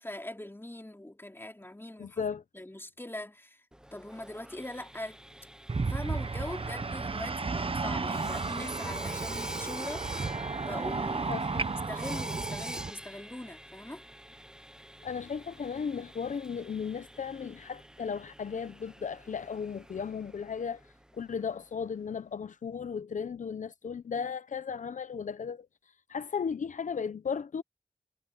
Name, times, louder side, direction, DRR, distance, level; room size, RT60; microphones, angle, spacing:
voice 1, 0.0-2.2 2.5-3.6 3.9-5.2 5.9-11.3 11.6-14.0, left 1 dB, 20° left, 2.9 m, -42 dB
voice 2, 2.0-2.4 11.3-11.6 15.0-20.8 21.2-25.7 26.1-27.6, left 6 dB, 85° left, 0.7 m, -35 dB
Sawing, 3.7-21.5, right 1 dB, 5° right, 0.7 m, -47 dB
sound 1, 5.7-12.9, right 4 dB, 45° right, 0.8 m, -33 dB
cardioid pair, 40°, 13 cm